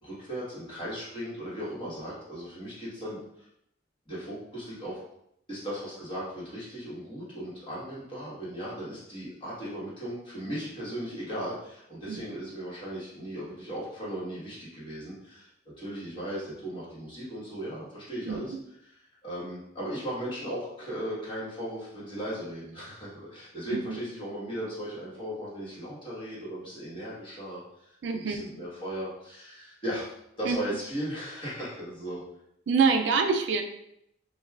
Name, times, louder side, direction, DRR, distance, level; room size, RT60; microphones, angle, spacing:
voice 1, 0.0-3.5 4.1-5.0 5.5-15.5 15.8-18.5 19.2-32.2, equal, 25° left, -8 dB, 1.3 m, -37 dB
voice 2, 28.0-28.5 30.4-30.6 32.7-33.6, right 5 dB, 60° right, 6 dB, 0.3 m, -25 dB
5.2 x 2.2 x 2.3 m, 0.77 s
head